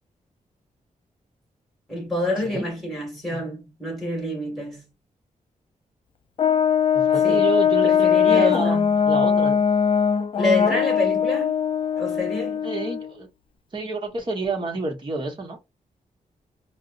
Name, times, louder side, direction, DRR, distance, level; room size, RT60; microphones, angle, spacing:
voice 1, 1.9-4.8 7.2-7.5 7.8-9.0 10.4-11.5 12.0-12.7, left 1 dB, ahead, 1.7 m, -27 dB
Brass instrument, 6.4-13.1, left 7 dB, 40° left, 0.3 m, -20 dB
voice 2, 6.9-8.8 9.1-9.7 12.6-13.3 13.7-15.6, right 3 dB, 35° right, 1.0 m, -29 dB
4.2 x 2.0 x 2.5 m
wide cardioid pair, 170°, 14 cm